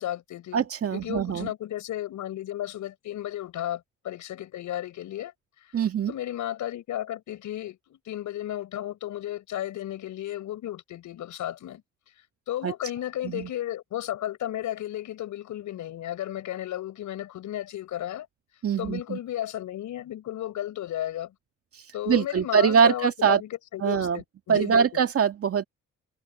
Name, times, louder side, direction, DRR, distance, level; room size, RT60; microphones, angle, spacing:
voice 1, 0.0-0.6 0.9-5.3 6.1-11.8 12.5-18.3 18.8-21.3 21.9-25.0, left 12 dB, 75° left, 5.9 m, -34 dB
voice 2, 0.5-1.5 5.7-6.1 12.6-12.7 13.2-13.5 18.6-19.2 22.1-23.4 23.8-24.2 24.5-25.6, right 7 dB, 50° right, 2.0 m, -23 dB
cardioid pair, 90°, 30 cm